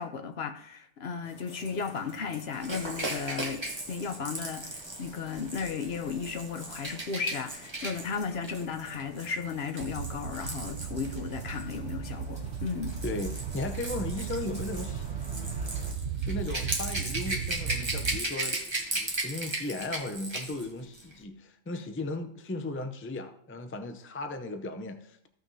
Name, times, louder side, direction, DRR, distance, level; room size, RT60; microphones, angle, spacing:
voice 1, 0.0-13.0, left 5 dB, 65° left, 7 dB, 1.0 m, -35 dB
sound 1, 1.2-15.9, equal, 5° right, 2.1 m, -50 dB
Rattle / Rattle (instrument), 2.6-11.6 12.6-20.7 20.9-21.1, right 2 dB, 25° right, 1.2 m, -37 dB
sound 2, 9.8-18.2, right 7 dB, 75° right, 0.9 m, -36 dB
voice 2, 13.0-15.5 16.2-25.3, left 2 dB, 15° left, 7 dB, 0.4 m, -36 dB
15.0 x 6.0 x 2.7 m, 0.70 s
omnidirectional pair, 1.2 m